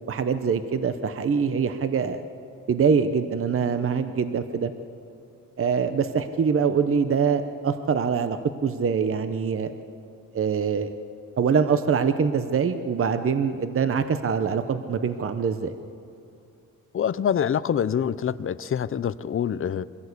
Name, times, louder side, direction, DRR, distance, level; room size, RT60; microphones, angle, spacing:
voice 1, 0.1-2.2 2.7-4.7 5.6-9.7 10.3-10.9 11.4-15.7, right 6 dB, 40° right, 10 dB, 0.7 m, -24 dB
voice 2, 16.9-19.8, left 8 dB, 40° left, 16 dB, 0.5 m, -25 dB
23.5 x 16.0 x 8.2 m, 2.5 s
wide cardioid pair, 175°, 34 cm